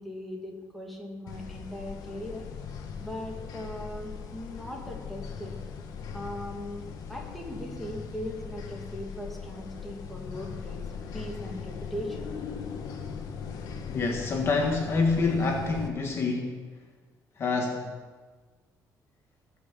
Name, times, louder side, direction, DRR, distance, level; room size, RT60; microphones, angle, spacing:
voice 1, 0.0-2.4 3.0-5.6 6.1-6.8 7.1-10.8 11.1-12.4, equal, ahead, -1 dB, 2.3 m, -39 dB
sound 1, 1.3-15.9, left 6 dB, 70° left, 1.5 m, -39 dB
voice 2, 13.9-16.6 17.4-17.9, left 3 dB, 40° left, 2 dB, 1.5 m, -27 dB
19.0 x 6.4 x 7.4 m, 1.4 s
cardioid pair, 160°, 7 cm